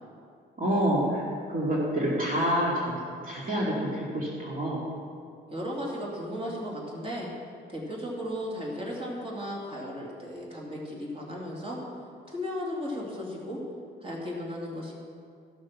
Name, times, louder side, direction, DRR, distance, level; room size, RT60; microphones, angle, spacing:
voice 1, 0.6-4.8, equal, 45° right, -5 dB, 2.5 m, -28 dB
voice 2, 5.5-7.3 7.7-11.8 12.3-13.6 14.0-14.9, equal, 25° right, -3 dB, 2.8 m, -35 dB
14.5 x 6.5 x 6.0 m, 2.4 s
cardioid pair, 90°, 20 cm